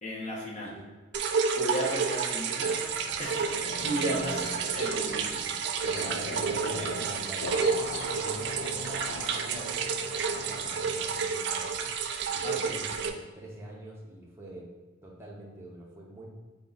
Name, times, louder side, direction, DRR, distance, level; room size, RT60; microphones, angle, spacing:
voice 1, 0.0-0.7 1.5-2.7 3.2-5.2 12.4-12.7, equal, 35° left, -4 dB, 0.8 m, -34 dB
sound 1, 1.1-13.1, right 6 dB, 55° right, 0.3 m, -30 dB
sound 2, 2.3-11.0, left 2 dB, 80° left, 0.5 m, -40 dB
sound 3, 3.0-3.1 3.6-3.7 4.1-5.1 5.4-6.1 6.8-6.9 7.6-8.3, left 2 dB, 20° left, 1.4 m, -44 dB
voice 2, 5.1-5.4 5.8-7.6 8.1-11.9 12.3-14.7 15.0-16.3, right 1 dB, 10° right, -3 dB, 0.6 m, -45 dB
4.1 x 2.7 x 3.8 m, 1.3 s
head